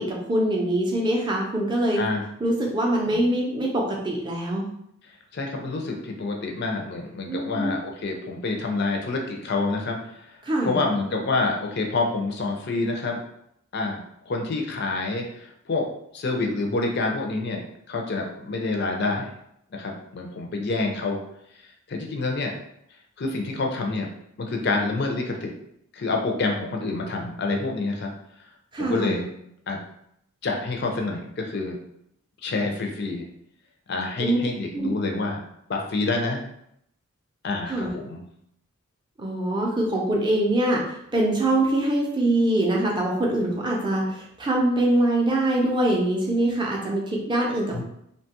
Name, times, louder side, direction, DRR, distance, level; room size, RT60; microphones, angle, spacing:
voice 1, 0.0-2.0 2.4-4.7 7.3-7.8 10.4-10.8 28.7-29.2 34.2-34.4 34.7-34.9 37.7-37.9 39.2-47.8, right 1 dB, 20° right, -1 dB, 0.5 m, -24 dB
voice 2, 5.3-10.3 10.6-13.2 13.7-14.0 14.3-15.9 16.1-19.3 19.7-21.2 21.9-22.5 23.2-24.1 24.4-25.5 25.9-28.1 28.8-29.3 29.7-29.8 30.4-31.8 32.4-33.3 33.9-35.4 35.7-36.4 37.4-38.3 47.7-47.8, left 3 dB, 50° left, 1 dB, 0.4 m, -27 dB
2.7 x 2.2 x 2.9 m, 0.75 s
head